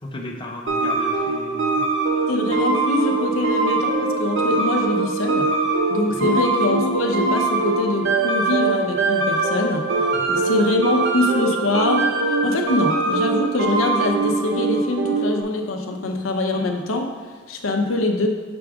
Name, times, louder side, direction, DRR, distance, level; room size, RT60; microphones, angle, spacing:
voice 1, 0.0-1.9 6.1-6.3 10.1-10.4, left 1 dB, 25° left, 0 dB, 0.7 m, -34 dB
sound 1, 0.7-15.4, right 3 dB, 65° right, 0.8 m, -22 dB
voice 2, 2.3-5.5 5.9-9.8 10.3-17.1 17.5-18.3, left 2 dB, 75° left, 3 dB, 0.7 m, -23 dB
6.0 x 3.5 x 4.9 m, 1.5 s
head